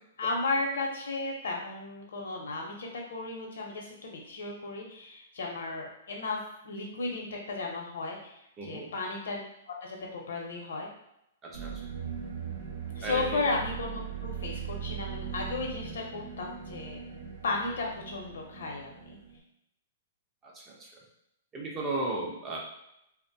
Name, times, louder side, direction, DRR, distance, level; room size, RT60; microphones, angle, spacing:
voice 1, 0.2-8.4 8.6-9.4 9.8-10.9 13.0-17.0 17.4-19.2, left 3 dB, 85° left, 0 dB, 0.7 m, -34 dB
voice 2, 8.6-8.9 11.4-11.7 13.0-13.5 20.4-20.9 21.5-22.6, right 2 dB, 15° right, -2 dB, 0.5 m, -35 dB
sound 1, 11.5-19.4, right 8 dB, 70° right, 0.6 m, -40 dB
2.5 x 2.1 x 2.6 m, 0.82 s
hypercardioid pair, 160°, 0 cm